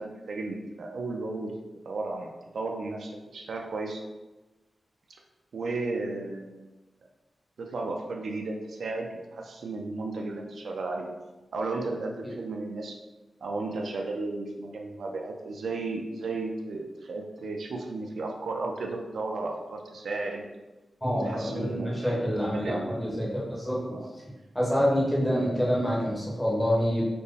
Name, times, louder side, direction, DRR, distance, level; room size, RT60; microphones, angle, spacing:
voice 1, 0.0-1.5 1.9-2.3 2.5-4.0 5.5-6.7 7.6-11.1 11.5-13.0 13.4-20.5 21.2-23.0 23.9-24.0, right 3 dB, 75° right, 2 dB, 0.4 m, -34 dB
voice 2, 21.0-24.0 24.5-27.0, equal, 5° left, -5 dB, 0.9 m, -27 dB
4.2 x 2.0 x 3.3 m, 1.1 s
wide cardioid pair, 165°, 0 cm